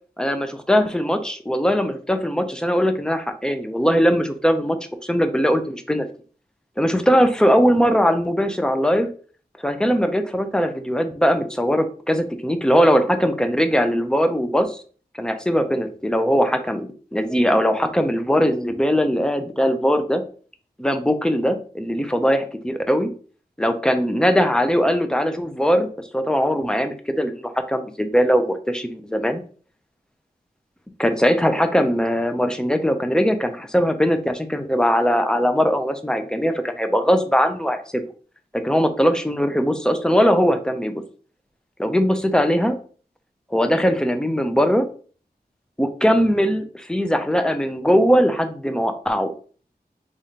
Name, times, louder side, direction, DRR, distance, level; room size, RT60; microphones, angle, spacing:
voice 1, 0.2-4.8 5.0-6.1 6.8-9.1 9.6-14.8 15.2-20.2 20.8-23.1 23.6-25.9 26.1-29.4 31.0-38.0 38.5-41.0 41.8-42.8 43.5-44.9 45.8-49.3, equal, 5° left, 7 dB, 0.6 m, -20 dB
3.5 x 2.5 x 4.1 m, 0.42 s
wide cardioid pair, 45°, 17 cm